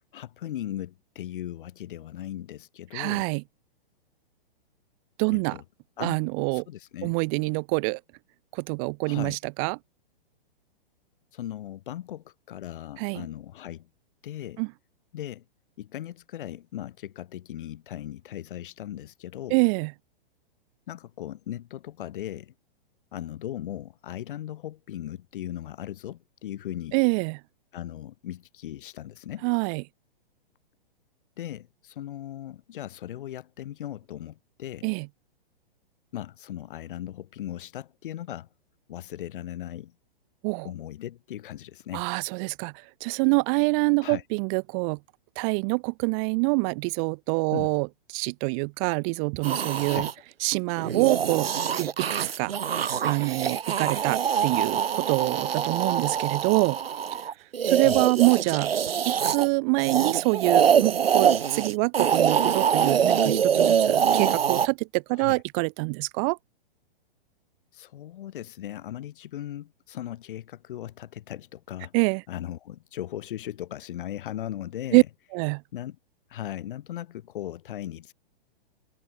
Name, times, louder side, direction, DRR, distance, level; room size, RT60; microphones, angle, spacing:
voice 1, 0.0-3.3 5.5-5.6 6.0-6.3 6.5-7.1 9.0-9.4 11.3-13.9 14.2-14.6 15.1-15.4 15.8-19.6 20.9-22.5 23.1-27.0 27.7-29.5 31.4-34.9 36.1-38.5 38.9-39.9 40.6-42.0 44.0-44.2 47.5-47.7 49.9-50.1 57.8-58.0 65.1-65.4 67.7-71.9 72.3-75.1 75.7-76.0 76.3-78.1, left 12 dB, 60° left, 3.4 m, -38 dB
voice 2, 2.9-3.4 5.2-5.6 6.0-6.6 7.0-8.0 8.5-9.8 13.0-13.3 14.6-14.7 19.5-19.9 26.9-27.4 29.4-29.8 34.8-35.1 40.4-40.7 41.9-42.7 43.0-45.0 45.4-47.9 48.1-50.1 50.4-51.5 51.8-52.1 52.4-52.6 53.0-56.8 57.6-58.7 59.0-66.4 71.9-72.2 74.9-75.0 75.3-75.6, right 37 dB, 35° right, 1.0 m, -25 dB
sound 1, 49.4-50.1 50.8-59.5 59.8-64.7, right 8 dB, 85° right, 1.1 m, -24 dB
hypercardioid pair, 130°, 29 cm